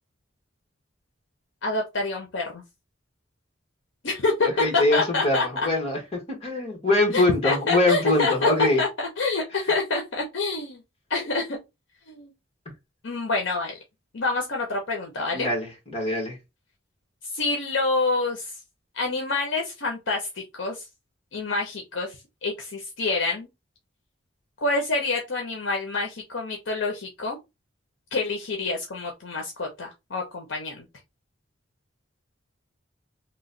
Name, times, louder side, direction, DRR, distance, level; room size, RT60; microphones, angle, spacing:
voice 1, 1.6-2.6 4.0-4.5 4.7-5.5 7.1-8.5 8.8-10.8 11.1-11.6 12.1-12.3 13.0-13.8 14.1-15.5 17.2-18.6 18.9-20.8 21.3-23.5 24.6-27.4 28.1-30.9, left 3 dB, 70° left, 0.7 m, -27 dB
voice 2, 4.6-8.8 15.3-16.4, left 2 dB, 35° left, 1.3 m, -23 dB
3.0 x 2.2 x 3.8 m
head